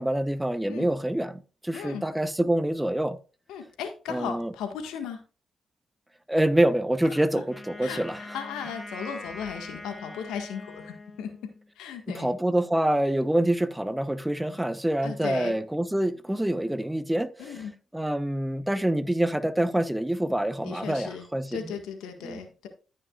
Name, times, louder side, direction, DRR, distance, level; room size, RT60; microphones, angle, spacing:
voice 1, 0.0-3.2 4.1-4.5 6.3-8.2 12.1-17.5 17.9-21.6 22.2-22.4, right 1 dB, 10° right, 0.9 m, -26 dB
voice 2, 1.7-2.0 3.5-5.2 7.1-7.4 7.8-11.4 11.7-12.3 15.0-15.5 17.4-17.7 20.6-22.7, left 7 dB, 85° left, 1.7 m, -36 dB
Wind instrument woodwind instrument, 7.5-11.7, left 2 dB, 25° left, 2.7 m, -42 dB
14.5 x 6.4 x 2.4 m
supercardioid pair, 55°, 0 cm